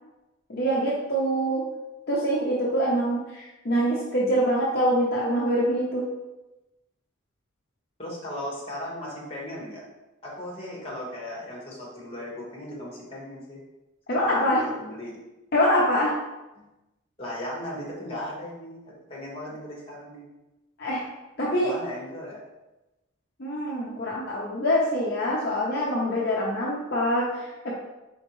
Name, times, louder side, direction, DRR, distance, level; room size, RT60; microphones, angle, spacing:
voice 1, 0.5-1.7 2.1-6.1 14.1-14.6 15.5-16.1 20.8-21.0 21.4-21.7 23.4-27.7, equal, 50° left, -5 dB, 0.6 m, -24 dB
voice 2, 8.0-9.8 10.2-13.6 14.1-15.1 16.6-16.7 17.2-20.2 21.6-22.4, left 1 dB, 30° left, -4 dB, 1.2 m, -37 dB
4.2 x 3.5 x 3.0 m, 1.0 s
head